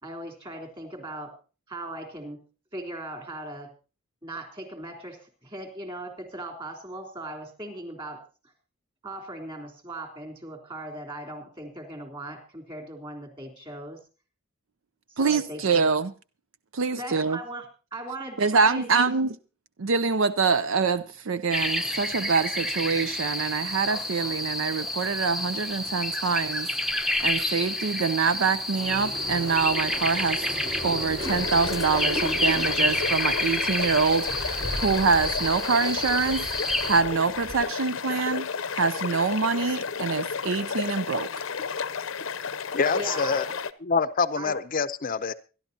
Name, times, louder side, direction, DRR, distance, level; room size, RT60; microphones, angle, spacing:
voice 1, 0.0-1.3 1.7-2.4 2.7-3.7 4.2-8.2 9.0-14.0 15.2-15.8 16.9-17.6 17.9-19.1 31.2-31.3 32.1-32.7 43.0-43.4 44.4-44.5, right 1 dB, 25° right, 3.7 m, -38 dB
voice 2, 15.2-16.1 16.7-17.4 18.4-19.4 19.8-26.7 27.0-30.4 30.8-36.5 36.8-41.3, right 5 dB, 75° right, 0.6 m, -25 dB
sound 1, 21.5-37.0, left 1 dB, ahead, 0.8 m, -29 dB
sound 2, 28.8-37.7, left 1 dB, 55° right, 3.9 m, -38 dB
sound 3, 31.2-43.7, left 6 dB, 75° left, 0.7 m, -32 dB
voice 3, 42.7-43.5 43.8-45.3, left 5 dB, 45° left, 0.6 m, -26 dB
25.0 x 12.0 x 2.8 m
head